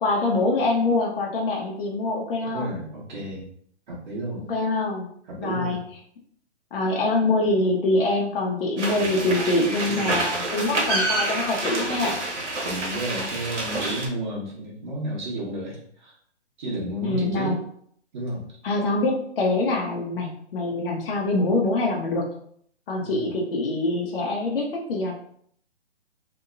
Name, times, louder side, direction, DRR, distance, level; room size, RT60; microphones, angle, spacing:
voice 1, 0.0-2.7 4.4-5.1 5.4-5.8 6.7-12.2 17.0-17.6 18.6-22.3 22.9-25.1, left 2 dB, 50° left, -1 dB, 0.6 m, -24 dB
voice 2, 2.4-3.5 3.9-4.4 5.3-5.8 9.0-9.3 9.9-10.2 12.6-16.2 16.6-17.5 18.1-18.4 23.0-23.3, right 1 dB, 40° right, -5 dB, 1.2 m, -32 dB
sound 1, 8.8-14.1, right 2 dB, 85° right, 0.9 m, -27 dB
2.8 x 2.2 x 2.5 m, 0.63 s
hypercardioid pair, 145°, 35 cm